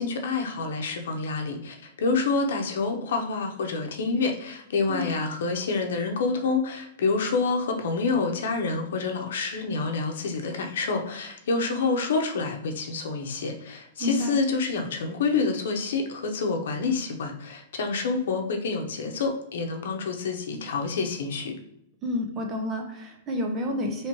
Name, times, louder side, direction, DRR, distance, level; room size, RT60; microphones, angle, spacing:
voice 1, 0.0-21.5, left 4 dB, 75° left, 3 dB, 0.7 m, -27 dB
voice 2, 14.0-14.3 22.0-24.1, left 1 dB, 15° right, 2 dB, 0.6 m, -29 dB
3.2 x 3.0 x 4.5 m, 0.76 s
supercardioid pair, 175°, 0 cm